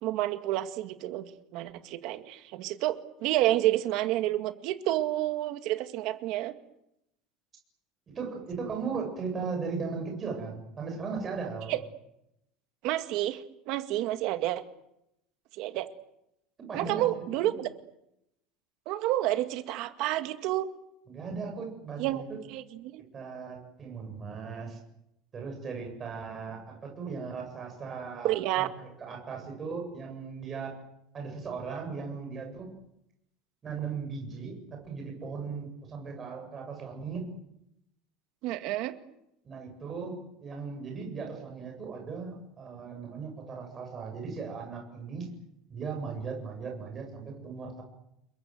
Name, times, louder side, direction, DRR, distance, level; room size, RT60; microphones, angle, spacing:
voice 1, 0.0-6.5 11.7-11.8 12.8-14.6 15.5-15.9 16.7-17.7 18.9-20.7 22.0-22.2 22.5-23.0 28.2-28.7 38.4-38.9, right 15 dB, 50° right, 9 dB, 2.1 m, -29 dB
voice 2, 8.1-11.7 16.7-17.6 21.1-22.2 23.1-24.8 25.3-30.7 31.1-32.7 33.6-37.3 39.4-45.3 45.7-47.8, right 5 dB, 20° right, 2 dB, 7.9 m, -37 dB
29.5 x 22.0 x 8.0 m, 0.83 s
cardioid pair, 175°, 0 cm